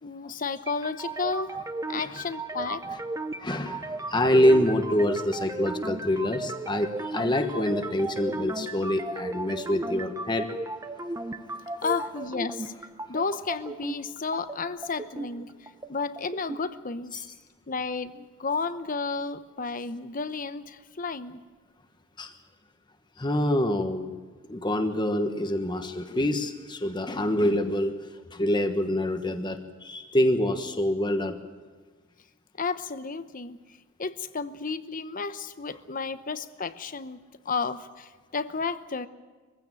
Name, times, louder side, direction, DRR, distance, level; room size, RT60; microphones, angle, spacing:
voice 1, 0.0-1.5 1.9-2.8 11.8-12.7 13.1-17.1 17.7-21.4 32.6-33.6 34.0-39.1, left 4 dB, 45° left, 13 dB, 0.9 m, -32 dB
sound 1, 0.7-16.6, right 2 dB, 15° right, 0.8 m, -36 dB
voice 2, 3.4-10.6 17.1-17.2 22.2-22.3 23.2-24.1 24.5-27.9 28.3-31.4, left 1 dB, 25° left, 7 dB, 1.2 m, -26 dB
23.0 x 16.0 x 9.0 m, 1.4 s
head